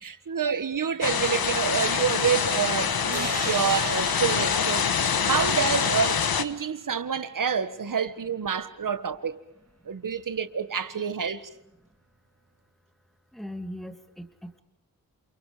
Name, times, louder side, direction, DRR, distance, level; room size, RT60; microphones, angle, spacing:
voice 1, 0.0-4.9 5.3-9.4 9.9-11.4, right 7 dB, 60° right, 1.6 m, -28 dB
sound 1, 1.0-6.4, left 6 dB, 75° left, 1.5 m, -25 dB
sound 2, 3.1-6.9, right 4 dB, 45° right, 2.7 m, -39 dB
voice 2, 13.3-14.6, equal, ahead, 2.4 m, -39 dB
29.0 x 28.5 x 5.1 m
wide cardioid pair, 75°, 36 cm